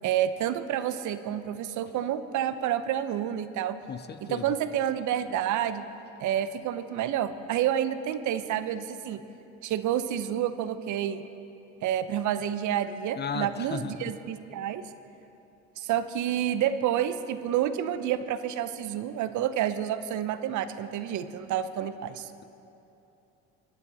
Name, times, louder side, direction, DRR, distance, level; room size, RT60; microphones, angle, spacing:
voice 1, 0.0-3.8 4.2-5.8 6.2-9.2 9.6-11.2 11.8-14.8 15.8-22.3, right 10 dB, 55° right, 12 dB, 0.8 m, -29 dB
voice 2, 3.9-4.5 13.2-14.1, left 6 dB, 30° left, 12 dB, 0.6 m, -35 dB
22.5 x 9.4 x 4.1 m, 2.9 s
hypercardioid pair, 70°, 35 cm